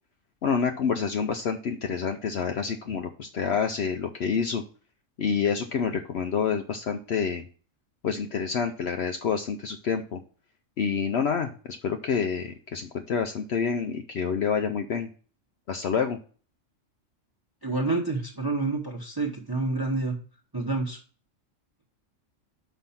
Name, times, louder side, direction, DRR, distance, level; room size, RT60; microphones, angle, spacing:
voice 1, 0.4-4.6 5.2-7.5 8.0-10.2 10.8-15.1 15.7-16.2, left 6 dB, 60° left, 5 dB, 0.9 m, -28 dB
voice 2, 17.6-20.2 20.5-21.0, right 3 dB, 20° right, 0 dB, 1.0 m, -28 dB
5.7 x 5.1 x 5.7 m, 0.40 s
omnidirectional pair, 1.3 m